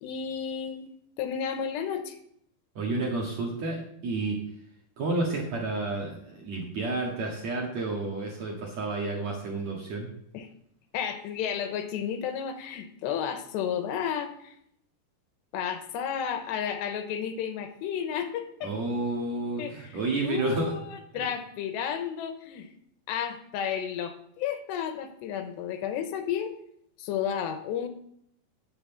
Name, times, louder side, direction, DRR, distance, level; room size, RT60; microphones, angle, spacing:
voice 1, 0.0-0.9 1.2-2.2 10.3-10.5 10.9-14.6 15.5-18.7 19.6-22.7 23.1-26.5 27.0-27.9, left 8 dB, 80° left, 8 dB, 3.1 m, -32 dB
voice 2, 2.8-4.4 5.0-10.1 18.6-20.7 21.1-21.2, right 3 dB, 50° right, -1 dB, 2.3 m, -30 dB
9.9 x 7.3 x 7.1 m, 0.71 s
omnidirectional pair, 5.1 m